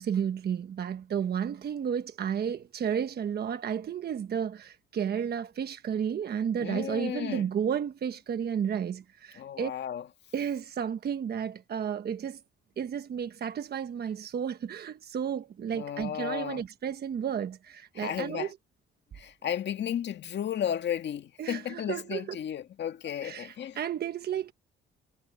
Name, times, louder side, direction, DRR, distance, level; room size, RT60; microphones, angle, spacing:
voice 1, 0.0-9.7 10.3-12.4 12.8-18.6 21.4-22.4 23.2-24.5, right 8 dB, 55° right, 1.2 m, -32 dB
voice 2, 6.6-7.5 9.4-10.0 15.7-16.6 18.0-18.5 19.1-23.8, left 9 dB, 60° left, 1.9 m, -34 dB
cardioid pair, 90°, 20 cm